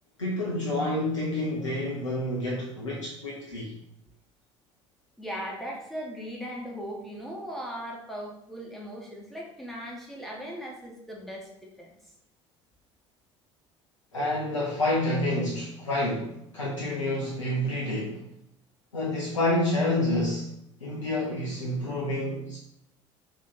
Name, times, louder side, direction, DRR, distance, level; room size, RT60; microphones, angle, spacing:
voice 1, 0.2-3.7 14.1-18.2 18.9-20.5 20.8-22.6, left 1 dB, 80° left, -5 dB, 0.5 m, -28 dB
voice 2, 5.2-11.5 11.8-11.9, equal, ahead, -3 dB, 1.0 m, -38 dB
2.8 x 2.7 x 3.7 m, 0.76 s
figure-of-eight pair, 60°, 16 cm